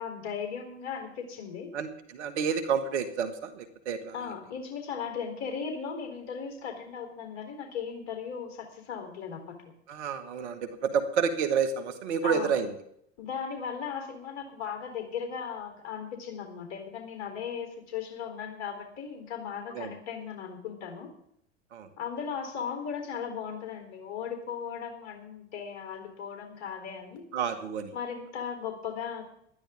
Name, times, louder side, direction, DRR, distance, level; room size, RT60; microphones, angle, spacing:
voice 1, 0.0-1.7 4.1-9.5 12.2-12.5 13.2-21.1 22.0-27.2 27.9-29.2, left 7 dB, 55° left, 3 dB, 3.9 m, -37 dB
voice 2, 1.7-4.1 9.9-12.8 19.7-19.9 21.7-21.9 27.3-27.9, right 6 dB, 75° right, 8 dB, 2.1 m, -29 dB
19.0 x 12.5 x 3.8 m, 0.70 s
hypercardioid pair, 85°, 35 cm